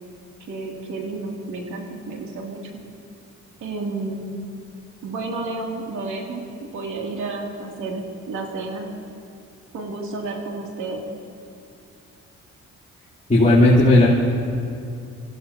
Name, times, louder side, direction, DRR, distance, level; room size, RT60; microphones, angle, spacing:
voice 1, 0.5-2.6 3.6-4.3 5.0-6.4 6.7-8.9 9.7-11.0, right 3 dB, 70° right, -1 dB, 3.1 m, -31 dB
voice 2, 13.3-14.1, left 1 dB, 25° left, -10 dB, 3.7 m, -13 dB
27.5 x 15.5 x 3.0 m, 2.5 s
cardioid pair, 90°, 30 cm